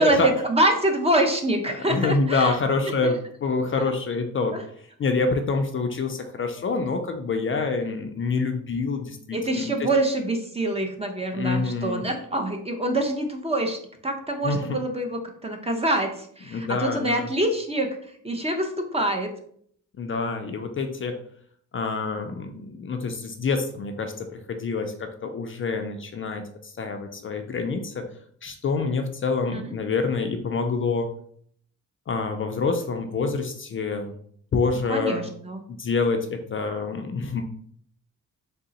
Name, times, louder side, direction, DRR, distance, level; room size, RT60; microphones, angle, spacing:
voice 1, 0.0-2.6 3.0-3.1 3.8-3.9 4.5-4.6 9.3-13.8 14.0-17.9 18.2-19.3 29.5-29.7 34.9-35.6, right 1 dB, 20° right, 4 dB, 0.6 m, -25 dB
voice 2, 1.7-4.6 5.0-9.9 11.3-12.0 14.4-14.8 16.5-17.3 20.0-21.1 21.7-28.0 28.4-31.1 32.1-34.1 34.5-35.3 35.7-37.4, left 4 dB, 40° left, 5 dB, 0.4 m, -27 dB
3.6 x 2.0 x 4.0 m, 0.63 s
cardioid pair, 90°, 31 cm